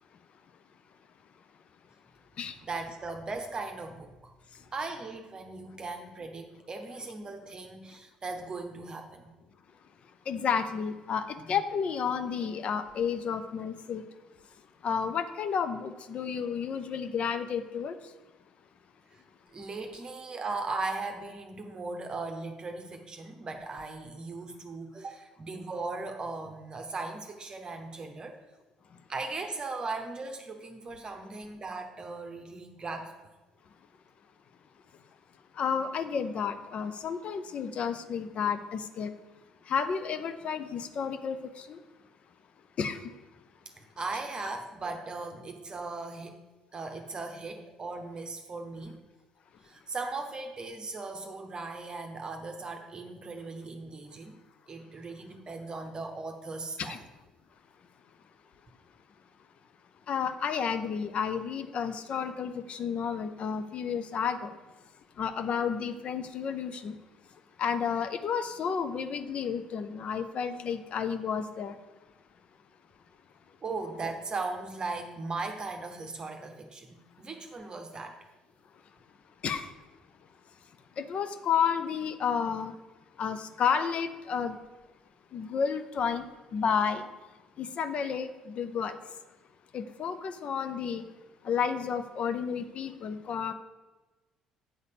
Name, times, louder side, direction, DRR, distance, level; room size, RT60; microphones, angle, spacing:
voice 1, 2.7-4.1 4.7-9.3 19.1-19.2 19.5-28.4 29.1-33.1 43.8-46.4 46.7-49.0 49.6-54.4 54.7-57.0 73.6-78.2, right 3 dB, 30° right, 4 dB, 0.8 m, -38 dB
voice 2, 10.3-14.0 14.8-18.0 35.6-39.1 39.7-41.8 42.8-43.0 56.8-57.0 60.1-64.6 65.2-67.0 67.6-71.8 79.4-79.7 81.0-82.7 83.2-84.6 85.3-86.3 86.5-87.1 87.6-89.0 89.7-91.0 91.4-93.5, left 7 dB, 45° left, 10 dB, 0.6 m, -31 dB
8.5 x 4.1 x 6.7 m, 1.2 s
figure-of-eight pair, 50°, 3 cm